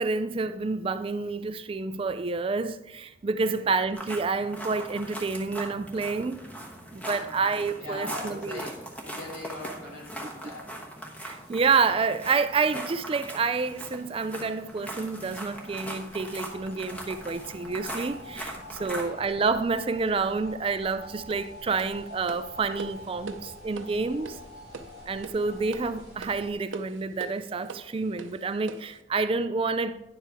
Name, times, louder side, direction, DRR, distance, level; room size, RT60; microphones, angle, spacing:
voice 1, 0.0-6.4 6.9-8.6 11.2-24.4 25.1-30.0, right 4 dB, 30° right, 0.3 m, -28 dB
sound 1, 3.9-19.0, right 1 dB, 5° left, 1.1 m, -40 dB
voice 2, 7.7-10.7 18.8-19.2, left 2 dB, 90° left, 3.8 m, -41 dB
sound 2, 11.1-26.5, left 1 dB, 55° left, 2.4 m, -47 dB
sound 3, 21.3-29.0, right 4 dB, 85° right, 0.6 m, -43 dB
10.0 x 7.5 x 3.5 m
head